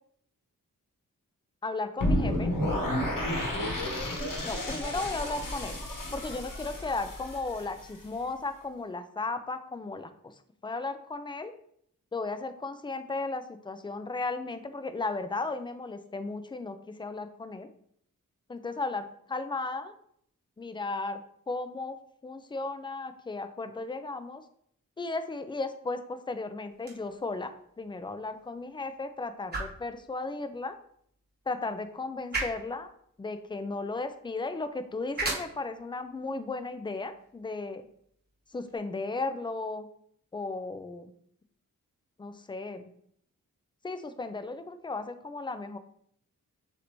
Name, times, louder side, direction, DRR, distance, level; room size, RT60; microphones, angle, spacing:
voice 1, 1.6-2.5 4.4-5.8 6.1-10.3 10.6-11.5 12.1-17.7 18.5-19.9 20.6-21.2 21.5-22.0 22.2-24.4 25.0-30.8 31.5-32.9 33.2-37.8 38.5-39.9 40.3-41.1 42.2-42.9 43.8-45.8, left 3 dB, 15° left, 9 dB, 0.3 m, -35 dB
sound 1, 2.0-8.0, left 1 dB, 75° left, 1.1 m, -31 dB
sound 2, 26.7-38.8, right 2 dB, 30° right, 1.1 m, -41 dB
6.5 x 2.6 x 2.9 m, 0.67 s
wide cardioid pair, 95°, 33 cm